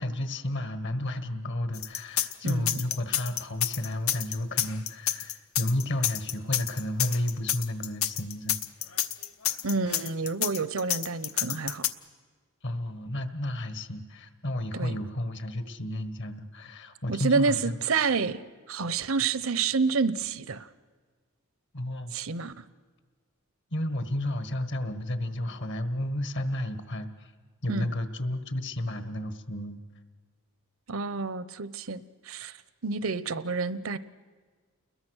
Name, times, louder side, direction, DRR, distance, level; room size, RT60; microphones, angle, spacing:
voice 1, 0.0-8.6 12.6-17.7 21.7-22.1 23.7-27.3 27.6-29.8, left 1 dB, 60° left, 10 dB, 1.5 m, -32 dB
sound 1, 1.7-11.9, left 11 dB, 75° left, 1.0 m, -28 dB
voice 2, 2.4-2.8 9.6-11.9 14.7-15.0 17.1-18.4 18.7-20.7 22.1-22.6 27.7-27.9 30.9-32.6 32.8-34.0, right 4 dB, 70° right, 16 dB, 0.8 m, -29 dB
29.5 x 21.5 x 6.4 m, 1.5 s
head